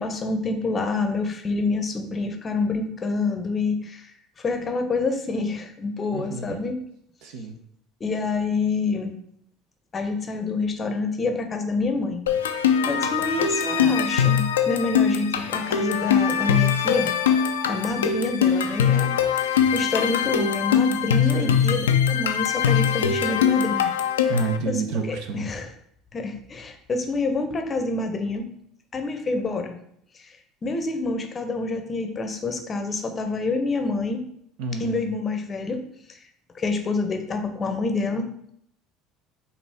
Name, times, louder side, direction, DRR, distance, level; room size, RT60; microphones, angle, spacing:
voice 1, 0.0-6.8 8.0-9.2 9.9-17.1 17.7-23.9 24.7-25.7 26.1-28.5 28.9-29.8 30.1-30.3 30.6-34.2 34.8-35.8 36.1-36.2 36.5-38.3, left 3 dB, 35° left, 6 dB, 0.6 m, -27 dB
voice 2, 6.1-6.6 7.2-7.5 21.3-21.8 24.3-25.4 34.6-34.9, right 4 dB, 70° right, 4 dB, 0.7 m, -29 dB
sound 1, 12.3-24.6, left 8 dB, 90° left, 0.3 m, -22 dB
4.2 x 2.6 x 3.4 m, 0.69 s
hypercardioid pair, 75°, 0 cm